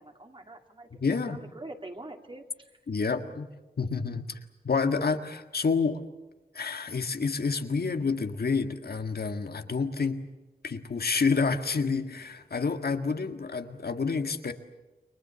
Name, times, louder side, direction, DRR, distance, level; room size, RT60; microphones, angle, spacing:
voice 1, 0.0-0.9 1.3-2.7, right 2 dB, 30° right, 4 dB, 2.8 m, -44 dB
voice 2, 0.9-1.4 2.9-3.5 3.8-4.4 4.6-6.0 6.5-10.2 10.6-14.5, left 4 dB, 75° left, 7 dB, 1.9 m, -28 dB
29.5 x 23.0 x 7.0 m, 1.1 s
wide cardioid pair, 80°, 16 cm